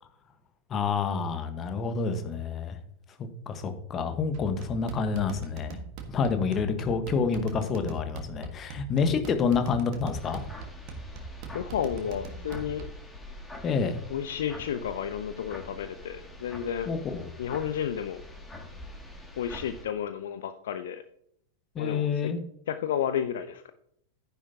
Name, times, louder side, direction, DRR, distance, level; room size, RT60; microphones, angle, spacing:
voice 1, 0.7-2.8 3.2-5.8 6.1-10.4 13.6-14.0 16.9-17.3 21.7-22.4, left 5 dB, 25° left, 8 dB, 1.3 m, -28 dB
sound 1, 4.3-13.1, right 4 dB, 45° right, 1.5 m, -42 dB
sound 2, 10.1-19.8, left 1 dB, 10° left, 2.3 m, -45 dB
voice 2, 11.5-12.8 14.1-16.9 17.4-18.2 19.4-21.0 21.8-22.1 22.7-23.7, left 9 dB, 60° left, 11 dB, 0.6 m, -32 dB
10.5 x 10.0 x 2.8 m, 0.68 s
figure-of-eight pair, 90°, 0 cm